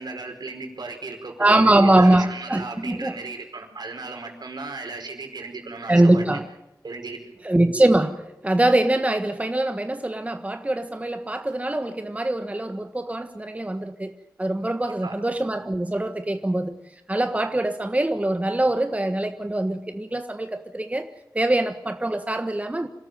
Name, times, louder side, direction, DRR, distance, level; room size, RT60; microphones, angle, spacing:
voice 1, 0.0-6.3 6.8-7.2 15.0-15.1, right 3 dB, 70° right, 3 dB, 4.8 m, -35 dB
voice 2, 1.4-3.2 5.9-6.4 7.4-14.1 14.4-16.8 17.1-21.1 21.3-22.9, right 1 dB, 20° right, 7 dB, 1.4 m, -22 dB
26.5 x 13.5 x 9.2 m, 0.89 s
cardioid pair, 50°, 7 cm